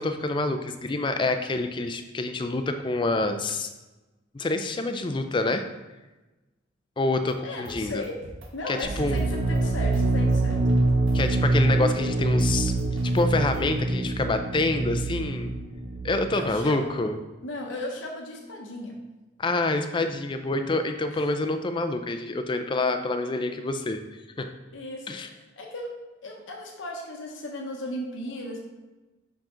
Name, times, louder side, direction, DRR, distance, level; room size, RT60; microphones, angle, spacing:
voice 1, 0.0-3.7 4.3-5.6 7.0-8.0 8.7-9.2 11.1-12.7 13.1-15.5 16.0-17.2 19.4-24.0 24.4-24.5 25.1-25.3, left 2 dB, 25° left, 8 dB, 0.4 m, -27 dB
sound 1, 7.3-8.5 8.8-10.0 10.3-11.2 12.0-12.1 12.4-13.7, right 1 dB, 75° right, 1.1 m, -43 dB
voice 2, 7.4-8.2 8.5-10.6 16.3-16.9 17.4-19.0 21.1-21.3 24.7-25.9 26.2-28.6, left 1 dB, 70° left, 0 dB, 1.0 m, -36 dB
sound 2, 8.8-16.5, right 2 dB, 55° right, 0.5 m, -25 dB
5.9 x 4.8 x 3.8 m, 1.1 s
head